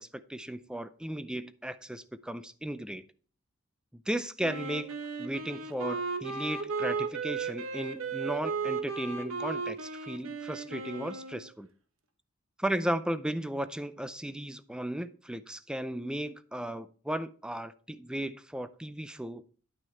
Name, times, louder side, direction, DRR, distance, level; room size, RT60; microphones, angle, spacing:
voice 1, 0.0-3.0 3.9-11.7 12.6-19.4, right 1 dB, 5° right, 13 dB, 0.4 m, -35 dB
Wind instrument woodwind instrument, 4.4-11.5, right 5 dB, 90° right, 1.1 m, -35 dB
9.7 x 6.0 x 4.4 m, 0.41 s
head